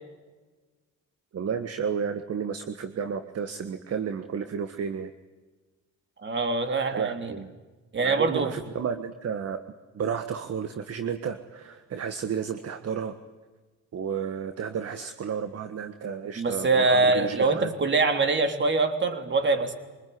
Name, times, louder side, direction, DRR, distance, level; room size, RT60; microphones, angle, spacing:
voice 1, 1.3-5.1 6.9-7.5 8.0-9.6 9.9-13.1 13.9-17.7, right 7 dB, 55° right, 8 dB, 1.6 m, -32 dB
voice 2, 6.2-7.3 7.9-8.5 16.4-19.8, right 3 dB, 40° right, 6 dB, 3.5 m, -24 dB
24.5 x 20.5 x 9.6 m, 1.3 s
cardioid pair, 90°, 30 cm